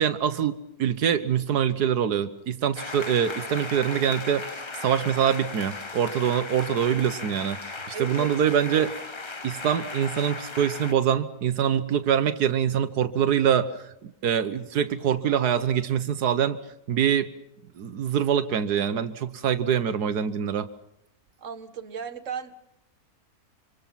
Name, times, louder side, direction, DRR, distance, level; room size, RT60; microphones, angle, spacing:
voice 1, 0.0-4.4 4.8-8.9 9.4-16.6 16.9-17.3 17.8-20.7, right 8 dB, 90° right, 11 dB, 1.7 m, -24 dB
sound 1, 2.7-10.9, left 3 dB, 20° left, 0.8 m, -37 dB
voice 2, 7.9-8.3 21.4-22.6, right 8 dB, 55° right, 9 dB, 1.8 m, -35 dB
26.5 x 25.5 x 5.8 m, 0.82 s
omnidirectional pair, 1.6 m